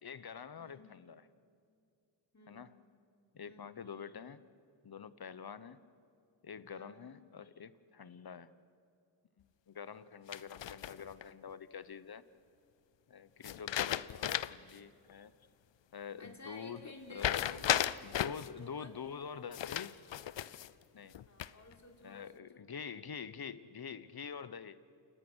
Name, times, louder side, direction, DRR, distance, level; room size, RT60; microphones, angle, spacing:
voice 1, 0.0-1.2 2.5-2.7 3.3-4.4 4.8-5.8 6.4-8.5 9.7-12.2 13.1-15.3 15.9-16.8 17.1-17.4 18.0-20.0 20.9-21.1 22.0-24.8, left 7 dB, 55° left, 15 dB, 1.1 m, -46 dB
voice 2, 0.6-1.0 2.3-2.7 3.4-3.8 6.7-7.2 16.2-17.9 18.6-18.9 21.0-22.7, left 2 dB, 35° left, 2 dB, 4.1 m, -54 dB
sound 1, 10.3-11.2 13.4-14.7 15.1-15.2 17.2-18.5 19.5-20.7 21.1-21.7, left 11 dB, 70° left, 0.7 m, -35 dB
29.0 x 18.5 x 6.4 m, 2.4 s
cardioid pair, 45°, 46 cm